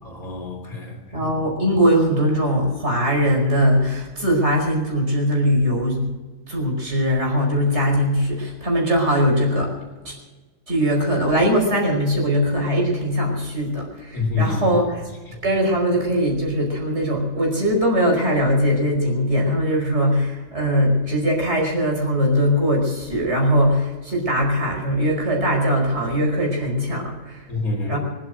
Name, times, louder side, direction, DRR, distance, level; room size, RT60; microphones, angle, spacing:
voice 1, 0.0-1.0 14.1-14.8 15.3-15.4 27.5-28.0, left 3 dB, 45° left, 3 dB, 3.9 m, -26 dB
voice 2, 1.1-6.1 6.5-9.7 10.0-10.2 10.7-15.1 15.4-27.5 27.9-28.0, equal, 35° right, 0 dB, 5.3 m, -21 dB
25.0 x 8.7 x 6.4 m, 1.2 s
omnidirectional pair, 2.1 m